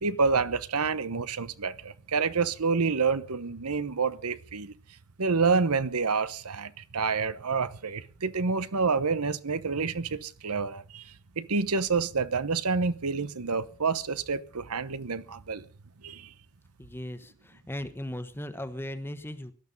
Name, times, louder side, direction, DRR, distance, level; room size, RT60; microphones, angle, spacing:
voice 1, 0.0-4.7 5.2-15.7 16.0-16.3, right 4 dB, 85° right, 1.0 m, -28 dB
voice 2, 16.8-19.5, left 1 dB, 10° left, 1.2 m, -37 dB
18.5 x 12.0 x 5.4 m
head